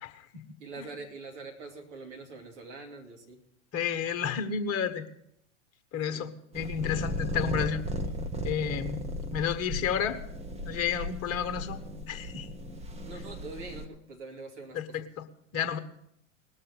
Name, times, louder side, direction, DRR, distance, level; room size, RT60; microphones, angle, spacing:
voice 1, 0.0-0.4 0.8-0.9 3.7-5.0 5.9-7.8 8.4-9.0 9.3-10.2 10.6-11.8 12.1-12.5 14.7-15.2 15.5-15.8, left 8 dB, 35° left, 8 dB, 1.4 m, -31 dB
voice 2, 0.6-3.4 6.1-6.3 13.0-15.1, right 3 dB, 60° right, 2 dB, 2.8 m, -44 dB
sound 1, 6.5-13.9, equal, 15° right, 1.2 m, -36 dB
19.5 x 6.6 x 7.5 m, 0.79 s
figure-of-eight pair, 90°, 40 cm